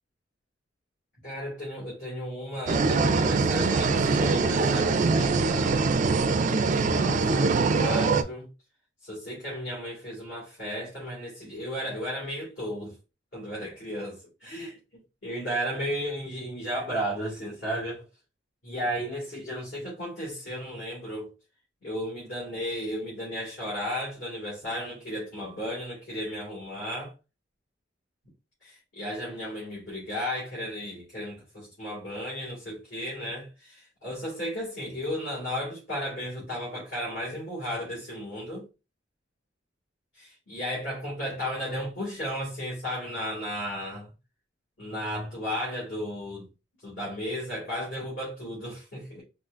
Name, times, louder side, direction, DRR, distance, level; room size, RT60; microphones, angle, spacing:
voice 1, 1.2-6.1 6.7-8.5 9.0-13.0 13.3-18.0 18.6-21.3 21.8-27.1 28.6-38.7 40.1-44.1 44.8-46.5 46.8-49.2, equal, 65° left, 2.0 m, -34 dB
sound 1, 2.7-8.2, right 4 dB, 40° right, 0.3 m, -23 dB
4.4 x 2.8 x 2.4 m
head